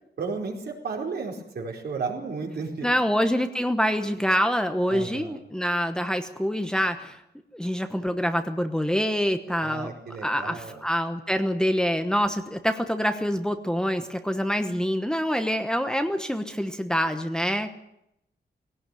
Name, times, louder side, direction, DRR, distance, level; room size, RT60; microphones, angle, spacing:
voice 1, 0.2-2.9 4.9-5.4 9.6-10.8, right 4 dB, 70° right, 1 dB, 4.6 m, -33 dB
voice 2, 2.8-7.2 7.5-9.9 10.2-17.8, equal, 5° left, 7 dB, 1.1 m, -26 dB
20.5 x 17.5 x 9.2 m, 0.81 s
wide cardioid pair, 175°, 17 cm